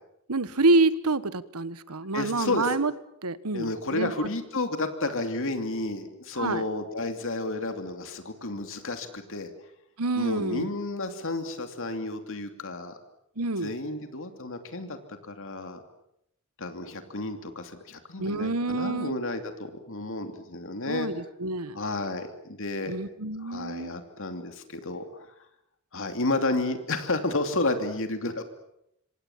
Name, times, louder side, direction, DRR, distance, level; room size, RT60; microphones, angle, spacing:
voice 1, 0.3-2.9 3.2-4.3 6.4-6.6 10.0-10.7 13.4-13.7 18.2-19.2 20.9-21.8 22.9-23.9, right 3 dB, 85° right, 15 dB, 1.3 m, -27 dB
voice 2, 2.1-2.7 3.5-9.5 10.1-13.0 13.6-15.8 16.6-21.1 21.7-23.0 23.4-25.3 25.9-28.4, left 2 dB, 60° left, 7 dB, 2.8 m, -31 dB
26.0 x 26.0 x 7.4 m, 0.76 s
head